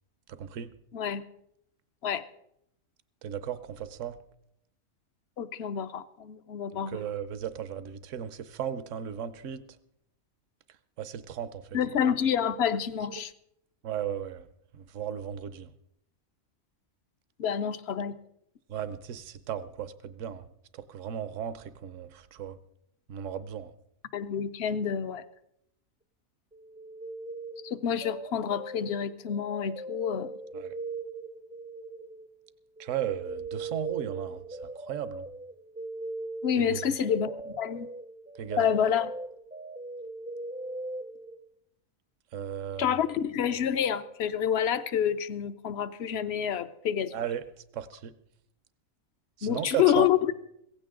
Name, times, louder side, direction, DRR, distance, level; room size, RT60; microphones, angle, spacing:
voice 1, 0.3-0.7 3.2-4.2 6.7-9.6 11.0-11.6 13.2-13.3 13.8-14.5 14.7-15.7 18.7-20.5 20.7-22.6 23.1-23.7 30.5-30.7 32.8-35.2 36.6-36.8 38.4-38.8 42.3-43.0 47.1-47.4 47.7-48.1 49.4-50.1, right 9 dB, 65° right, 14 dB, 1.1 m, -35 dB
voice 2, 5.4-7.0 11.7-13.3 17.4-18.1 24.1-25.2 27.6-30.3 36.4-37.9 38.6-39.1 42.8-47.1 49.4-50.3, left 9 dB, 60° left, 13 dB, 0.8 m, -28 dB
sound 1, 26.5-32.5 32.8-41.4, right 3 dB, 10° right, 0.4 m, -40 dB
16.5 x 15.5 x 3.7 m, 0.78 s
omnidirectional pair, 1.4 m